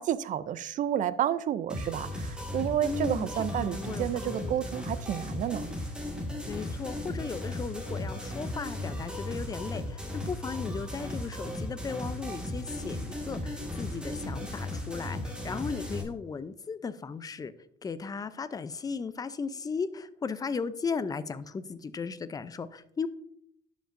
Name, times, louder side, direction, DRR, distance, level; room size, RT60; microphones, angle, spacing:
voice 1, 0.0-5.7, right 10 dB, 50° right, 15 dB, 0.4 m, -30 dB
sound 1, 1.7-16.0, left 1 dB, 5° right, 1.8 m, -36 dB
voice 2, 2.8-3.3 3.6-4.5 6.5-17.5 17.8-23.1, left 5 dB, 20° left, 14 dB, 0.5 m, -36 dB
11.5 x 5.2 x 2.5 m, 0.70 s
cardioid pair, 110°, 17 cm